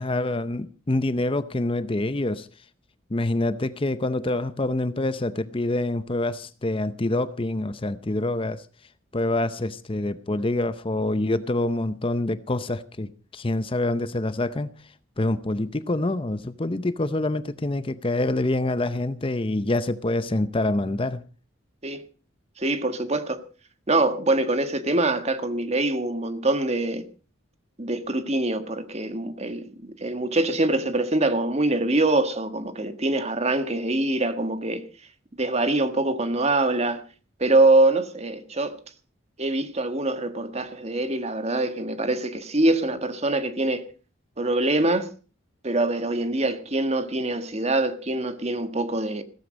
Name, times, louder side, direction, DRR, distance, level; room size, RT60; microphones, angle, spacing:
voice 1, 0.0-2.5 3.1-8.6 9.1-14.7 15.2-21.2, left 2 dB, 25° left, 0.7 m, -26 dB
voice 2, 22.6-23.4 23.9-27.1 27.8-34.9 35.4-37.0 37.4-38.8 39.4-43.9 44.4-45.1 45.6-49.2, right 2 dB, 30° right, 1.5 m, -24 dB
16.0 x 14.5 x 5.2 m
head